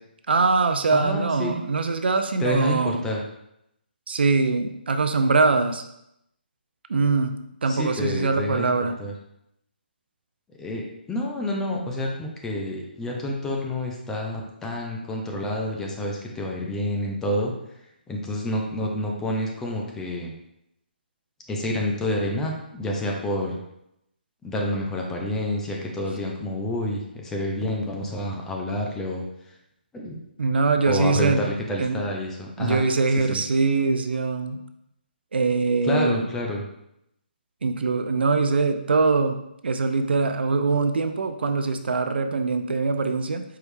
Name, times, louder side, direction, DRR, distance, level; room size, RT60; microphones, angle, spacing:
voice 1, 0.3-3.0 4.1-5.8 6.9-7.3 7.6-9.0 30.4-31.4 31.8-32.0 32.6-34.6 35.3-36.3 37.6-43.4, right 4 dB, 75° right, 8 dB, 0.5 m, -22 dB
voice 2, 0.9-1.6 2.4-3.2 7.7-9.1 10.6-17.5 18.1-20.3 21.5-23.6 24.4-29.2 29.9-30.2 30.9-32.8 33.2-33.4 35.8-36.6, left 1 dB, 10° left, -1 dB, 0.5 m, -28 dB
4.7 x 3.1 x 3.2 m, 0.80 s
hypercardioid pair, 155°, 6 cm